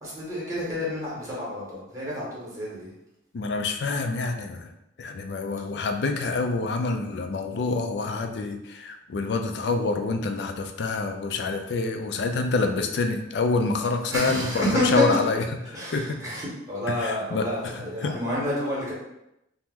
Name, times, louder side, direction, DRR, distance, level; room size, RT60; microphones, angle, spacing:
voice 1, 0.0-2.9 14.1-15.2 15.7-18.9, left 1 dB, 20° right, -6 dB, 1.0 m, -29 dB
voice 2, 3.3-4.7 5.0-14.7 14.9-16.2 17.0-17.5 17.7-18.2, left 3 dB, 65° left, 5 dB, 0.3 m, -27 dB
2.8 x 2.0 x 3.5 m, 0.86 s
head